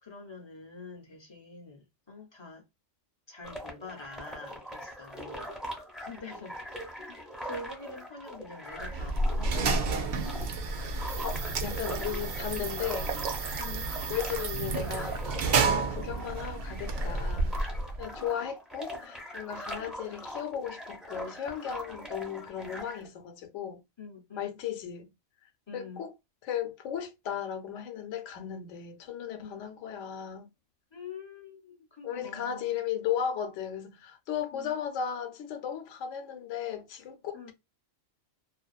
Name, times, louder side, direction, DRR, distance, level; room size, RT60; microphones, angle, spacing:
voice 1, 0.0-2.6 3.3-5.5 6.0-6.6 7.0-9.9 13.6-13.9 24.0-24.6 25.7-26.0 29.4-29.6 30.9-32.8 34.5-34.7 37.3-37.5, left 3 dB, 45° left, 0.3 m, -46 dB
sound 1, 3.4-23.1, equal, ahead, 0.6 m, -42 dB
sound 2, 8.8-18.1, right 3 dB, 65° right, 0.6 m, -30 dB
voice 2, 11.2-13.1 14.1-17.5 18.0-23.8 24.4-25.1 25.7-26.1 26.4-30.5 32.0-37.5, left 9 dB, 70° left, 0.9 m, -36 dB
2.5 x 2.2 x 2.3 m
omnidirectional pair, 1.4 m